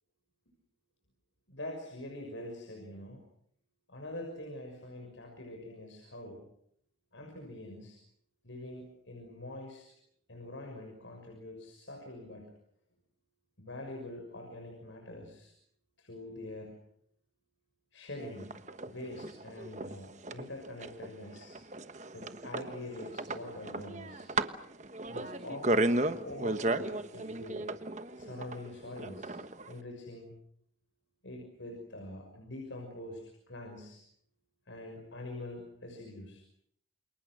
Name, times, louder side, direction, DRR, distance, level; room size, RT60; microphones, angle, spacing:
voice 1, 1.5-3.2 3.9-6.4 7.1-8.0 8.4-9.9 10.3-12.5 13.6-15.5 16.0-16.8 17.9-18.6 18.9-21.6 22.1-24.3 25.1-27.7 28.1-29.3 29.6-30.3 31.2-34.0 34.7-36.4, left 1 dB, 80° left, 2 dB, 6.2 m, -44 dB
sound 1, 18.2-29.7, right 2 dB, 35° right, 1.2 m, -35 dB
28.5 x 28.5 x 6.3 m, 0.69 s
head